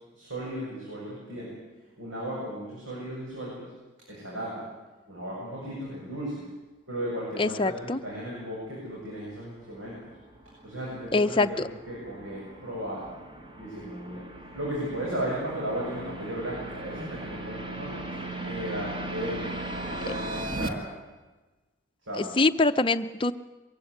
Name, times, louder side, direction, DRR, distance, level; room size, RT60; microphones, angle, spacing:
voice 1, 0.1-1.6 2.0-3.7 4.1-4.6 5.1-6.5 6.9-10.1 10.6-13.1 13.6-14.2 14.5-19.6 20.0-20.9 22.0-22.3, right 1 dB, 80° right, -5 dB, 7.8 m, -35 dB
voice 2, 7.4-8.0 11.1-11.7 22.2-23.3, left 3 dB, 25° left, 8 dB, 0.6 m, -24 dB
sound 1, 9.2-20.7, right 2 dB, 25° right, 1.6 m, -38 dB
23.0 x 15.5 x 9.6 m, 1.2 s
head